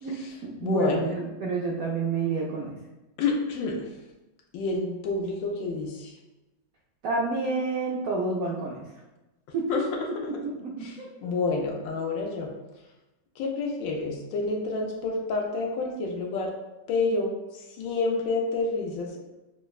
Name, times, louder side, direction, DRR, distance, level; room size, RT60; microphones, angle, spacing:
voice 1, 0.0-2.7 7.0-8.8 9.5-9.7 10.6-10.7 11.0-11.1, right 3 dB, 80° right, -2 dB, 0.7 m, -29 dB
voice 2, 0.6-1.1 3.2-3.8 4.5-6.1 9.7-10.4 10.8-10.9 11.2-12.5 13.4-16.5 16.9-19.2, left 3 dB, 80° left, 0 dB, 1.4 m, -29 dB
5.9 x 2.1 x 2.3 m, 1.0 s
omnidirectional pair, 2.0 m